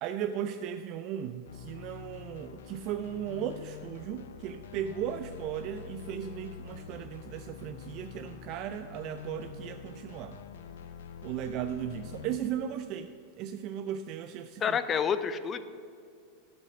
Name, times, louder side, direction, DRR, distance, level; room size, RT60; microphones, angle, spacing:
voice 1, 0.0-10.4 11.2-13.1 13.4-14.8, right 9 dB, 50° right, 8 dB, 0.4 m, -36 dB
sound 1, 1.4-12.4, left 7 dB, 80° left, 0.6 m, -46 dB
voice 2, 14.6-15.6, left 7 dB, 25° left, 12 dB, 0.5 m, -28 dB
8.5 x 7.7 x 5.8 m, 2.3 s
hypercardioid pair, 120°, 0 cm